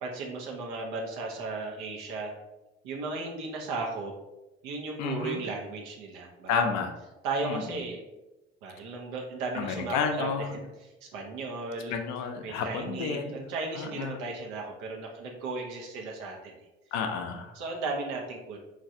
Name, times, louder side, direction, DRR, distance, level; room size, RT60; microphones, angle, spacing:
voice 1, 0.0-2.3 2.8-4.1 4.6-6.5 7.2-8.0 8.6-10.6 11.0-12.0 12.4-16.5 17.6-18.6, right 3 dB, 70° right, 0 dB, 0.7 m, -35 dB
voice 2, 5.0-5.4 6.5-6.9 7.4-7.6 9.5-10.5 11.9-13.4 13.8-14.2 16.9-17.5, left 6 dB, 60° left, 4 dB, 0.5 m, -31 dB
3.1 x 2.5 x 2.6 m, 1.0 s
figure-of-eight pair, 45°, 31 cm